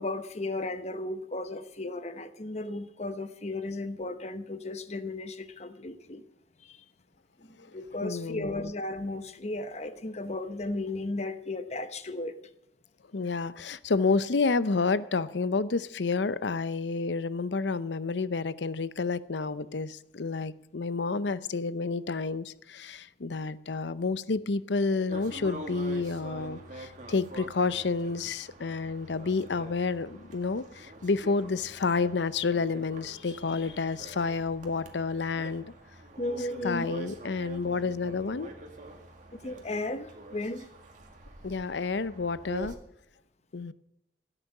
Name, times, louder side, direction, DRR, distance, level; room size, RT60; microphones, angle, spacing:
voice 1, 0.0-6.2 6.6-6.8 7.4-12.4 36.2-36.9 39.3-40.7, left 2 dB, 40° left, 10 dB, 1.0 m, -35 dB
voice 2, 8.0-8.7 13.1-35.6 36.6-38.5 41.4-42.8 43.5-43.7, left 4 dB, 85° left, 16 dB, 0.7 m, -30 dB
sound 1, 25.1-42.7, right 1 dB, 45° right, 2.2 m, -46 dB
16.5 x 10.0 x 6.6 m, 0.80 s
head